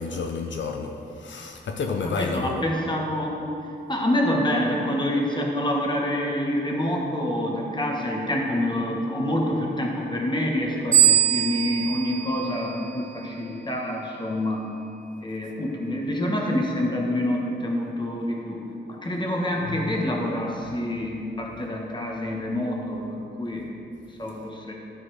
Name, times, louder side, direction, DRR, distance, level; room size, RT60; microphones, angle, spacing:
voice 1, 0.0-2.6 19.7-20.0 21.0-21.1 24.3-24.4, left 4 dB, 70° left, 0.5 m, -31 dB
voice 2, 2.1-3.4 3.9-14.6 15.2-18.6 18.9-23.6 24.2-24.7, left 1 dB, 25° left, 1.3 m, -27 dB
sound 1, 10.9-13.4, right 11 dB, 85° right, 1.5 m, -22 dB
11.5 x 4.2 x 4.8 m
wide cardioid pair, 95°, 20 cm